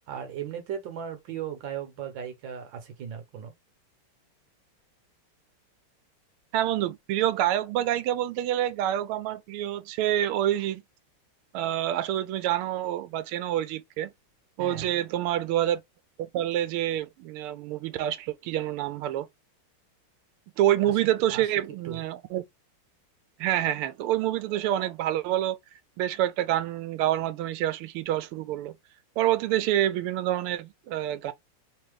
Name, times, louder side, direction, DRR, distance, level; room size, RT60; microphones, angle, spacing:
voice 1, 0.1-3.5 14.6-15.0 20.8-21.0 21.3-22.1, right 8 dB, 65° right, 1.7 m, -37 dB
voice 2, 6.5-10.8 11.5-14.1 14.6-15.8 16.2-19.3 20.6-22.4 23.4-25.6 26.0-28.7 29.2-31.3, right 12 dB, 90° right, 1.5 m, -27 dB
3.8 x 2.8 x 3.1 m
omnidirectional pair, 2.4 m